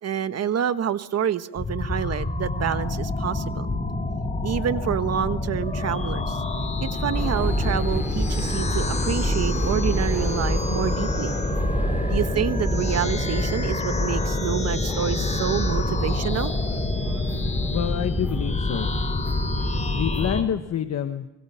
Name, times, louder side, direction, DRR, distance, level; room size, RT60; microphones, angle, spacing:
voice 1, 0.0-3.7 4.4-6.4 6.8-11.3 12.1-16.5, right 9 dB, 55° right, 12 dB, 1.3 m, -27 dB
sound 1, 1.6-20.4, left 2 dB, 25° left, 3.9 m, -27 dB
sound 2, 7.1-20.4, equal, 5° right, 5.9 m, -30 dB
voice 2, 17.7-18.9 19.9-21.3, left 9 dB, 60° left, 8 dB, 1.3 m, -27 dB
25.5 x 23.5 x 5.7 m, 0.93 s
cardioid pair, 90°, 30 cm